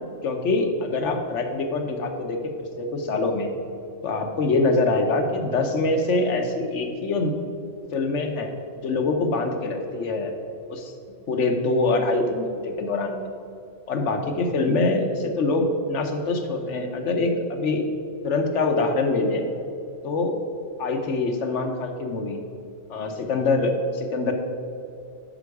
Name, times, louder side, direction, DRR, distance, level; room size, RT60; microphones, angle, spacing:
voice 1, 0.2-3.5 4.0-7.3 7.9-8.5 8.8-10.3 10.7-10.9 11.3-13.2 13.9-17.8 18.2-19.5 20.0-20.4 20.8-22.4 22.9-24.3, left 3 dB, 70° left, 5 dB, 1.2 m, -24 dB
9.1 x 5.8 x 4.8 m, 2.5 s
omnidirectional pair, 1.3 m